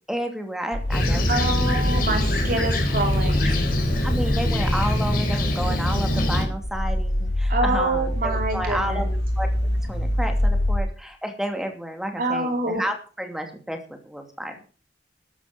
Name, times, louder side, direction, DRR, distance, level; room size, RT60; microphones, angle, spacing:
voice 1, 0.1-1.8 2.6-2.7 3.4-3.6 4.0-14.6, equal, 5° right, 5 dB, 2.8 m, -31 dB
sound 1, 0.7-10.8, equal, 80° left, 3.5 m, -26 dB
Fixed-wing aircraft airplane, 0.9-6.4, left 1 dB, 55° left, 4.3 m, -24 dB
voice 2, 1.3-3.5 7.5-9.0 12.2-12.8, right 2 dB, 55° right, 3 dB, 2.9 m, -26 dB
13.5 x 11.0 x 5.3 m, 0.37 s
head